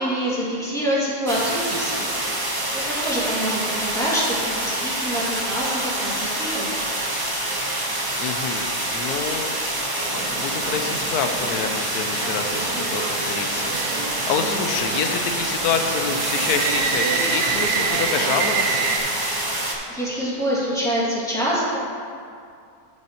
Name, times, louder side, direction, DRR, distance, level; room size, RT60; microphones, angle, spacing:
voice 1, 0.0-2.2 3.0-6.8 19.9-21.8, equal, ahead, -8 dB, 2.1 m, -25 dB
sound 1, 1.3-19.7, right 1 dB, 20° right, 0.8 m, -26 dB
voice 2, 8.2-18.9, left 6 dB, 80° left, 6 dB, 1.2 m, -28 dB
sound 2, 10.1-19.0, right 5 dB, 80° right, 1.2 m, -28 dB
14.0 x 6.3 x 2.9 m, 2.4 s
omnidirectional pair, 1.6 m